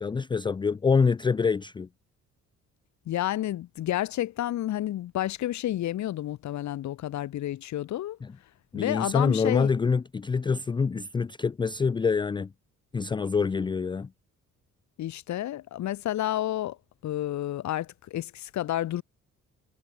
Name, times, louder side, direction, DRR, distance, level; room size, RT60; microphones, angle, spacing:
voice 1, 0.0-1.9 8.2-8.3 8.7-12.5 12.9-14.1, left 5 dB, 15° left, 0.3 m, -26 dB
voice 2, 3.1-8.2 8.7-9.7 15.0-16.8 17.0-19.0, left 13 dB, 70° left, 1.1 m, -30 dB
cardioid pair, 90°, 30 cm